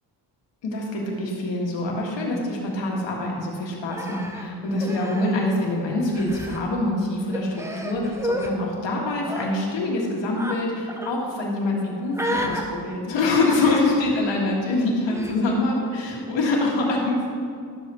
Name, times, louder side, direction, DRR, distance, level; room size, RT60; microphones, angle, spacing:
voice 1, 0.6-17.3, left 2 dB, 85° left, -2 dB, 1.9 m, -25 dB
Human voice, 3.9-5.7 6.0-6.6 7.3-8.5 9.2-9.5 10.4-10.6 10.9-11.1 12.1-12.6 13.5-14.0 15.1-15.4, equal, 5° right, 0.9 m, -31 dB
12.0 x 7.6 x 3.0 m, 2.4 s
cardioid pair, 75°, 43 cm